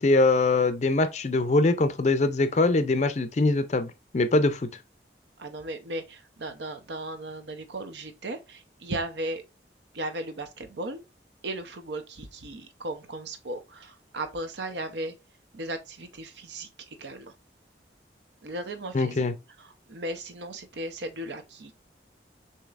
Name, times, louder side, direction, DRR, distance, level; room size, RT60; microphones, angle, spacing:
voice 1, 0.0-4.7 18.9-19.3, left 2 dB, 40° left, 0.4 m, -23 dB
voice 2, 5.4-9.4 9.9-11.0 11.4-15.1 15.5-17.3 18.4-19.2 19.6-21.7, right 1 dB, 75° right, 0.7 m, -36 dB
6.4 x 2.9 x 2.4 m
head